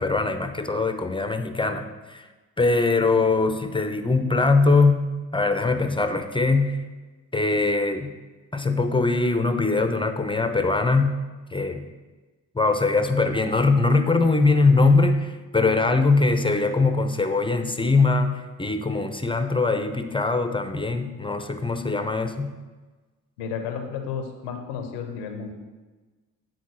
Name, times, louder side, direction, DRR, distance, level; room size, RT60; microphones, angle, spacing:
voice 1, 0.0-2.2 2.6-6.8 7.3-8.1 8.5-11.2 11.5-11.9 12.5-22.5, left 3 dB, 10° left, 8 dB, 0.8 m, -22 dB
voice 2, 23.4-25.5, left 6 dB, 85° left, 6 dB, 1.0 m, -32 dB
9.3 x 3.9 x 6.3 m, 1.3 s
hypercardioid pair, 45°, 44 cm